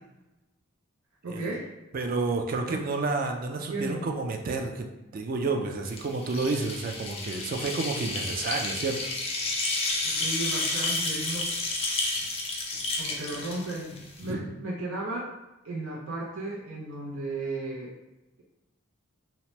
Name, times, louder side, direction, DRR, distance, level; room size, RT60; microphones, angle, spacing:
voice 1, 1.2-1.7 2.7-2.8 3.7-4.1 10.0-11.4 13.0-15.2 15.6-17.9, right 2 dB, 85° right, -5 dB, 0.6 m, -34 dB
voice 2, 1.9-9.1 14.2-14.5, right 3 dB, 40° right, 4 dB, 0.3 m, -30 dB
sound 1, 5.9-14.3, left 2 dB, 30° left, 0.4 m, -31 dB
2.8 x 2.1 x 3.0 m, 1.0 s
head